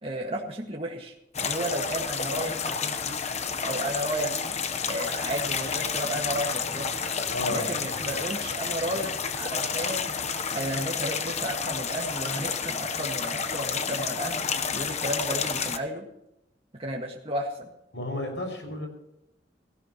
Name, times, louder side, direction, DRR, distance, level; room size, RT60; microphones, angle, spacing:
voice 1, 0.0-3.3 3.6-4.3 4.9-6.9 7.5-10.1 10.5-14.5 14.7-16.0 16.8-17.7, right 1 dB, 30° right, -1 dB, 1.9 m, -33 dB
sound 1, 1.3-15.8, left 6 dB, 40° left, 1.0 m, -30 dB
voice 2, 7.3-7.7 17.9-18.9, left 2 dB, 80° left, 3 dB, 6.1 m, -32 dB
18.0 x 16.5 x 3.1 m, 0.85 s
head